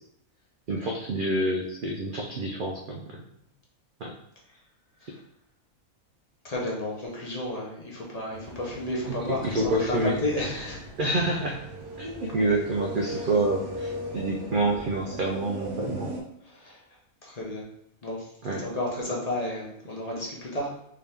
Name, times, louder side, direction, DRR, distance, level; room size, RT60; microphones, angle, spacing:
voice 1, 0.7-3.2 4.0-4.1 5.1-5.2 9.1-10.2 11.0-11.6 12.0-16.1 18.4-18.6, right 2 dB, 80° right, 0 dB, 0.4 m, -28 dB
voice 2, 6.4-10.8 16.5-16.8 17.2-17.6 18.0-18.3 18.6-20.7, left 1 dB, 35° left, -4 dB, 0.7 m, -32 dB
sound 1, 8.3-16.2, equal, 60° right, 1.0 m, -39 dB
3.6 x 2.8 x 3.4 m, 0.76 s
omnidirectional pair, 1.4 m